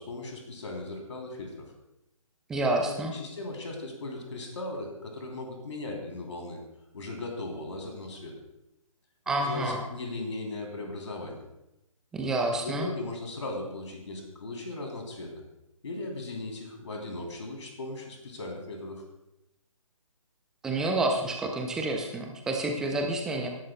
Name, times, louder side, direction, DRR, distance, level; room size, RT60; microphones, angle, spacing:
voice 1, 0.0-1.7 2.9-6.6 6.9-8.3 9.4-11.4 12.6-15.3 15.8-19.0, left 2 dB, 55° left, 2 dB, 3.1 m, -37 dB
voice 2, 2.5-3.1 9.3-9.8 12.1-12.9 20.6-23.5, right 2 dB, 5° right, 2 dB, 0.4 m, -29 dB
17.0 x 11.0 x 2.2 m, 0.89 s
figure-of-eight pair, 140°, 18 cm